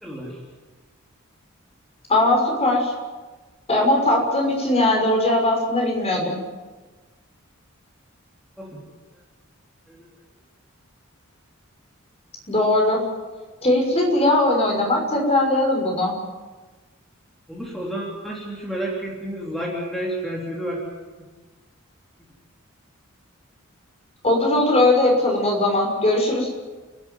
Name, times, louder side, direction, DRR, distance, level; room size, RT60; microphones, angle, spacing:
voice 1, 0.0-0.4 8.6-8.8 9.9-10.1 17.5-20.8, right 1 dB, ahead, -4 dB, 3.6 m, -30 dB
voice 2, 2.1-2.9 3.7-6.4 12.5-13.0 13.6-16.1 24.2-26.5, left 1 dB, 30° left, 1 dB, 6.3 m, -19 dB
29.5 x 12.5 x 9.4 m, 1.3 s
head